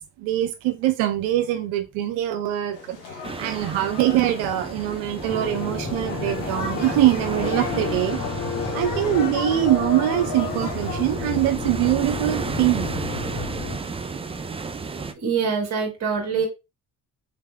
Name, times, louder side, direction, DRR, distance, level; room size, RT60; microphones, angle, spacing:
voice 1, 0.2-8.2 8.7-13.0, right 13 dB, 75° right, 0.7 m, -23 dB
sound 1, 2.7-11.5, left 3 dB, 85° left, 1.4 m, -35 dB
sound 2, 3.2-15.1, right 4 dB, 15° right, 0.4 m, -33 dB
sound 3, 5.3-13.8, left 4 dB, 35° left, 2.1 m, -31 dB
voice 2, 15.1-16.5, right 6 dB, 35° right, 1.4 m, -24 dB
4.0 x 3.3 x 2.2 m
hypercardioid pair, 55°, 46 cm